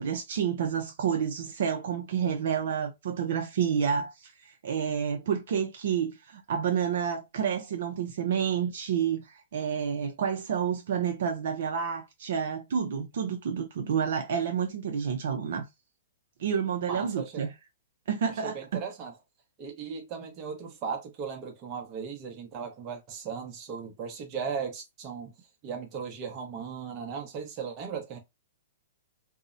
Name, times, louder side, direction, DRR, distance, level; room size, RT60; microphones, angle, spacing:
voice 1, 0.0-15.7 16.4-17.5 18.1-18.6, right 7 dB, 65° right, 0.5 m, -29 dB
voice 2, 16.8-17.5 18.4-19.1 19.6-25.3 25.6-28.2, right 6 dB, 30° right, 0.7 m, -37 dB
2.6 x 2.0 x 2.4 m
hypercardioid pair, 145°, 0 cm